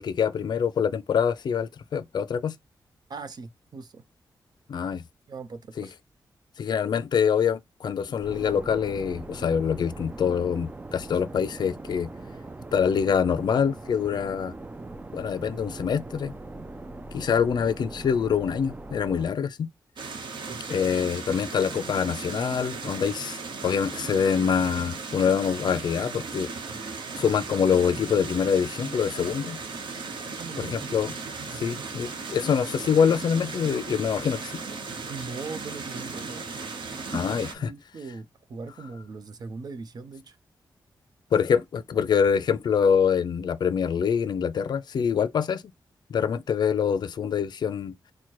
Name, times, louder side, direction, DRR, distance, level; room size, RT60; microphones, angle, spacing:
voice 1, 0.0-2.6 4.7-5.0 5.8-5.9 6.6-12.1 12.7-14.5 15.1-16.3 17.1-19.7 20.7-26.5 27.2-29.6 30.6-31.1 31.5-34.5 37.1-37.7 41.3-45.6 46.1-48.0, left 7 dB, 65° left, 0.5 m, -25 dB
voice 2, 3.1-4.0 5.3-5.9 20.5-20.6 30.4-30.9 31.5-31.8 35.1-36.4 37.5-40.4, right 4 dB, 55° right, 0.7 m, -40 dB
sound 1, 8.2-19.3, right 2 dB, 20° right, 0.4 m, -41 dB
sound 2, 20.0-37.5, right 4 dB, 85° right, 1.0 m, -36 dB
4.4 x 2.2 x 4.6 m
wide cardioid pair, 150°, 8 cm